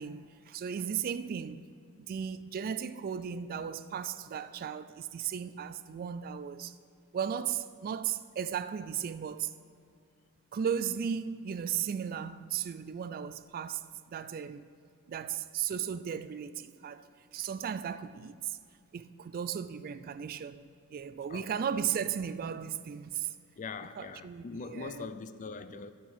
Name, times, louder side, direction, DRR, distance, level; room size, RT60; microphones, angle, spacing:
voice 1, 0.0-1.6 2.0-6.7 7.1-9.5 10.5-14.7 15.1-17.0 17.3-18.6 18.9-23.3 23.9-25.1, right 8 dB, 40° right, 0.3 m, -36 dB
voice 2, 23.6-25.9, left 4 dB, 35° left, 0.4 m, -42 dB
11.0 x 6.0 x 5.5 m
head